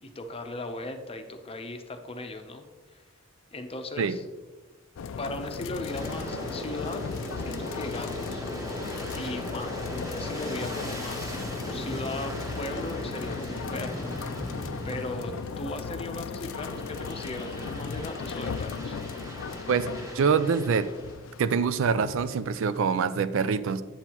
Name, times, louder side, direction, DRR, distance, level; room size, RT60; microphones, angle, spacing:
voice 1, 0.0-2.7 2.9-3.0 3.5-4.2 5.2-7.0 7.4-8.4 9.1-11.3 11.7-14.1 14.8-19.0, left 2 dB, 30° left, 6 dB, 0.7 m, -37 dB
sound 1, 5.0-22.8, left 5 dB, 65° left, 0.4 m, -37 dB
Aircraft, 5.8-15.8 16.3-21.3, equal, 15° right, 1.2 m, -38 dB
voice 2, 20.1-20.9 21.4-23.8, right 5 dB, 70° right, 13 dB, 0.4 m, -25 dB
8.1 x 7.9 x 3.0 m, 1.2 s
head